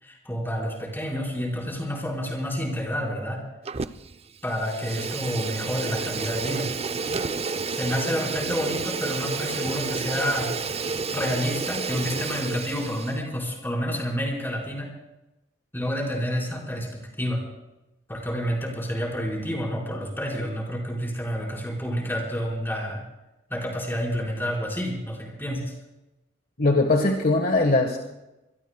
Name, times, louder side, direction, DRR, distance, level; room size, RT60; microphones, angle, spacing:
voice 1, 0.0-3.4 4.4-6.7 7.6-10.5 11.1-14.9 15.7-17.5 18.1-23.0 23.5-25.7, equal, 10° left, -2 dB, 4.8 m, -29 dB
Fire, 3.7-4.2 4.5-13.2, right 4 dB, 30° right, 0.5 m, -30 dB
voice 2, 26.6-28.0, left 2 dB, 45° left, 3 dB, 1.4 m, -20 dB
25.5 x 22.0 x 2.3 m, 0.98 s
head